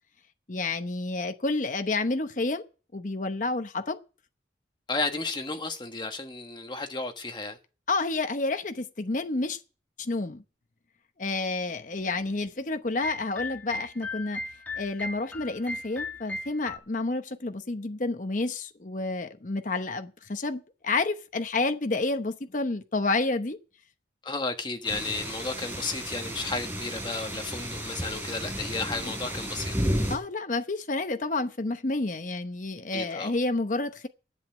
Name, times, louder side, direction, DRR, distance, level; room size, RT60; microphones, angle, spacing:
voice 1, 0.5-2.6 2.9-4.0 7.9-9.6 10.0-10.4 11.2-14.4 14.7-23.6 30.1-34.1, left 3 dB, 45° left, 0.9 m, -29 dB
voice 2, 4.9-7.6 24.2-29.7 32.9-33.3, left 3 dB, 25° left, 1.4 m, -33 dB
sound 1, 13.0-16.8, left 2 dB, 10° left, 1.5 m, -37 dB
sound 2, 24.8-30.2, equal, 10° right, 4.8 m, -33 dB
11.0 x 8.2 x 7.4 m
head